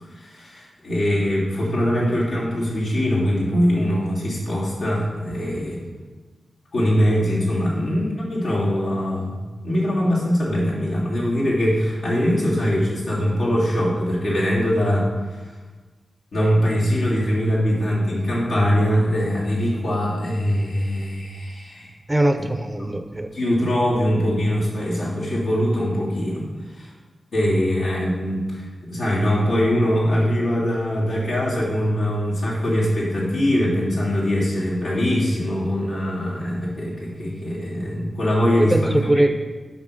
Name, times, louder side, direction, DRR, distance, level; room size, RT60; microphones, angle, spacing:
voice 1, 0.1-5.8 6.7-15.4 16.3-21.9 22.4-22.5 22.8-23.0 23.3-26.5 26.7-26.9 27.3-38.9, equal, 80° left, -7 dB, 3.1 m, -22 dB
voice 2, 22.1-23.3 38.6-39.3, right 1 dB, 15° right, 7 dB, 0.5 m, -21 dB
7.3 x 5.7 x 6.4 m, 1.3 s
wide cardioid pair, 135°, 0 cm